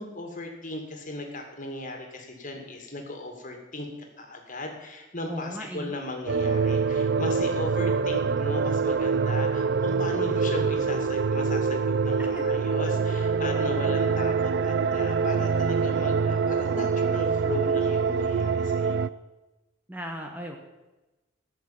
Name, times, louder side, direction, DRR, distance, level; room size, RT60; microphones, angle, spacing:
voice 1, 0.0-3.9 4.2-19.1, left 1 dB, 40° left, 3 dB, 2.3 m, -37 dB
voice 2, 5.3-5.9 12.2-12.4 13.5-13.9 19.9-20.6, equal, 10° right, 2 dB, 1.1 m, -37 dB
sound 1, 6.3-19.1, right 5 dB, 55° right, 0.4 m, -25 dB
14.5 x 6.6 x 8.7 m, 1.1 s
head